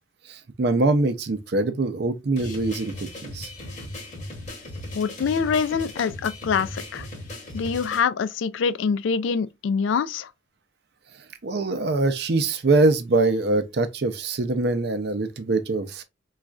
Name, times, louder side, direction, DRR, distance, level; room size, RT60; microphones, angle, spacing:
voice 1, 0.3-3.5 11.4-16.0, right 2 dB, 55° right, 0.5 m, -23 dB
sound 1, 2.4-8.0, left 1 dB, 40° left, 0.9 m, -37 dB
voice 2, 4.9-7.1 7.5-10.3, left 6 dB, 75° left, 0.3 m, -25 dB
4.1 x 2.3 x 2.3 m
head